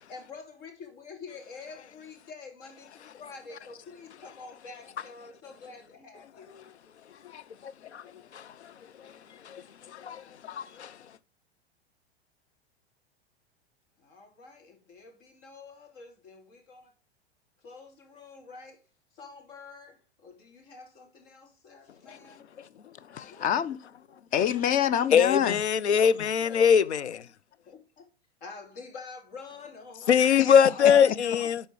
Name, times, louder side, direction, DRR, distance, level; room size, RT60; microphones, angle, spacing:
voice 1, 0.1-6.5 14.0-16.9 17.6-18.8 19.2-20.0 20.2-22.5 23.3-23.4 25.9-26.1 26.5-26.6 27.7-28.0 28.4-30.1 30.7-31.5, left 4 dB, 55° left, 2.9 m, -47 dB
voice 2, 7.2-8.7 9.0-9.1 9.4-11.0 22.1-22.2 22.6-22.7 23.1-23.3 25.1-27.3 30.0-31.7, left 7 dB, 85° left, 0.6 m, -24 dB
voice 3, 23.4-23.9 24.3-25.6 26.2-26.3 30.4-30.5 30.8-30.9, left 10 dB, 25° left, 0.5 m, -26 dB
11.0 x 4.4 x 4.7 m
hypercardioid pair, 100°, 33 cm